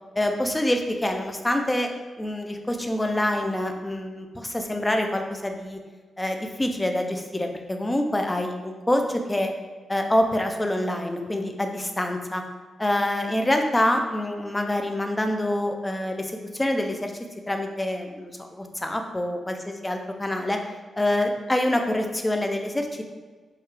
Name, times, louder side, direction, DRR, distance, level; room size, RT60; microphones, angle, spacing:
voice 1, 0.2-1.9 2.2-5.8 6.2-9.5 9.9-12.4 12.8-17.1 17.5-20.6 21.0-23.0, left 1 dB, 10° left, 4 dB, 0.4 m, -26 dB
6.4 x 2.3 x 3.2 m, 1.4 s
wide cardioid pair, 160°, 0 cm